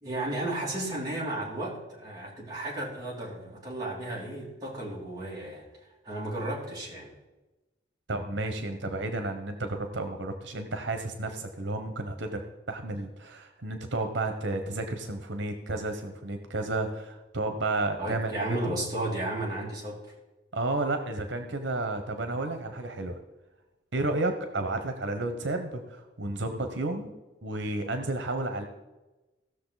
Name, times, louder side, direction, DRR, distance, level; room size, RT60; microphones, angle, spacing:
voice 1, 0.0-5.6 6.0-7.1 18.0-20.0, right 1 dB, 20° right, -5 dB, 3.0 m, -33 dB
voice 2, 8.1-12.4 12.7-18.7 20.5-23.2 23.9-27.1 27.4-28.7, right 2 dB, 85° right, 7 dB, 1.1 m, -32 dB
16.5 x 6.6 x 4.1 m, 1.1 s
head